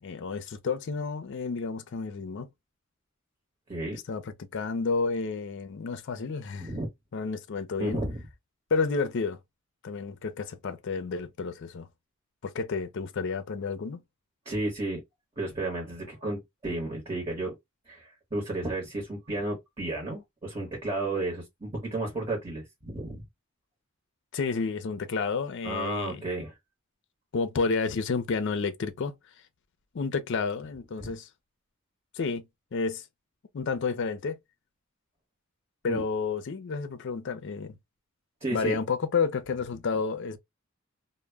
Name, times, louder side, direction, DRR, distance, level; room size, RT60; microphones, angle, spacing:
voice 1, 0.0-2.5 4.1-6.7 7.1-8.0 8.7-9.4 9.8-11.9 12.4-14.0 24.3-26.2 27.3-29.1 29.9-31.3 32.1-32.4 32.7-33.1 33.5-34.4 35.8-37.8 38.5-40.4, left 4 dB, 60° left, 0.4 m, -30 dB
voice 2, 7.8-8.2 14.4-15.0 15.4-17.5 17.9-23.2 25.6-26.5 31.0-31.1 35.9-36.0 38.4-38.8, right 2 dB, 25° right, 0.9 m, -32 dB
2.1 x 2.1 x 3.2 m
head